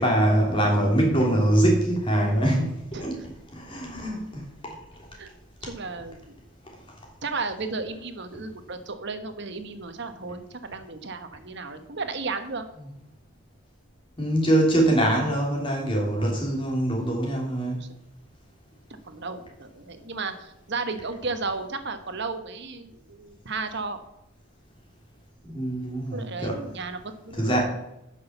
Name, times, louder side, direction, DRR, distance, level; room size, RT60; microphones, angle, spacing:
voice 1, 0.0-3.1 3.5-4.4 14.2-17.8 25.5-26.6 27.4-27.6, right 1 dB, 25° left, -1 dB, 3.1 m, -23 dB
voice 2, 5.6-6.4 7.2-12.7 16.1-16.5 17.8-17.9 19.1-24.0 26.1-27.0 27.2-27.6, right 4 dB, 50° right, 8 dB, 1.2 m, -34 dB
9.5 x 6.3 x 7.0 m, 0.85 s
head